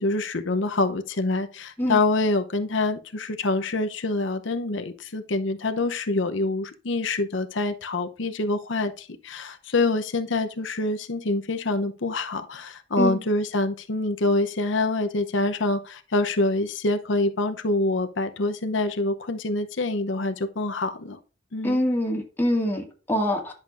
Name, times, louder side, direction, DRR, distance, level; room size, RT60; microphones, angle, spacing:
voice 1, 0.0-21.2 21.5-21.8, left 2 dB, 75° left, 0.8 m, -26 dB
voice 2, 21.6-23.5, equal, 10° left, 2.0 m, -24 dB
10.5 x 6.6 x 2.5 m
head